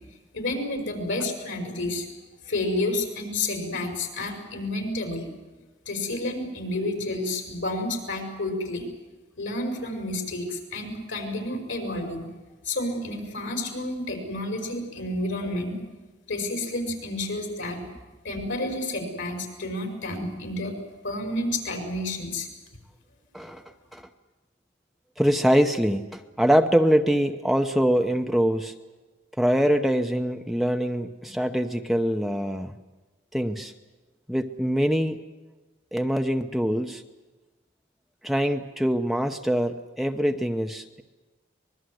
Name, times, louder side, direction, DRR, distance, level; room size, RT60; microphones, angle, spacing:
voice 1, 0.3-2.1 2.5-5.3 5.9-8.9 9.4-12.3 12.6-15.8 16.3-17.8 18.2-20.8 21.0-22.5 23.4-23.5, left 2 dB, 85° left, 5 dB, 5.3 m, -30 dB
voice 2, 25.2-28.7 29.4-32.7 33.3-33.7 34.3-35.2 35.9-37.0 38.2-41.0, equal, ahead, 5 dB, 0.8 m, -24 dB
24.5 x 21.0 x 7.9 m, 1.2 s
head